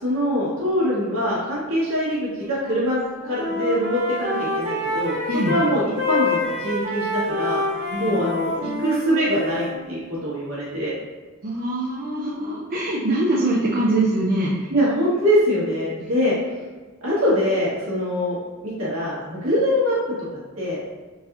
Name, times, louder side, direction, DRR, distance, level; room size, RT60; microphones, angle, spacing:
voice 1, 0.0-5.2 5.5-7.6 8.0-10.9 14.7-16.3 17.0-18.4 18.6-20.0 20.6-20.9, equal, 75° right, -7 dB, 1.4 m, -23 dB
Wind instrument woodwind instrument, 2.5-2.9 3.2-9.8, left 2 dB, 60° right, 1.5 m, -27 dB
voice 2, 7.9-8.2 11.4-14.7, right 1 dB, 40° right, -5 dB, 0.4 m, -23 dB
3.8 x 2.6 x 2.8 m, 1.3 s
head